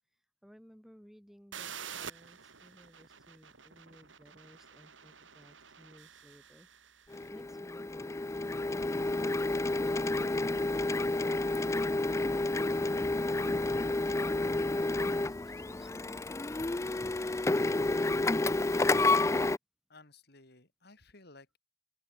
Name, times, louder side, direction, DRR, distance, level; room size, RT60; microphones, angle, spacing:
voice 1, 0.4-6.7 7.3-8.3 12.8-18.1, equal, ahead, 2.3 m, -58 dB
sound 1, 1.5-7.2, right 7 dB, 85° right, 3.4 m, -48 dB
Printer, 7.1-19.6, left 2 dB, 15° left, 0.4 m, -30 dB
sound 2, 10.1-15.6, right 1 dB, 55° right, 5.9 m, -63 dB
voice 2, 19.9-21.6, left 2 dB, 55° left, 4.2 m, -56 dB
open air
head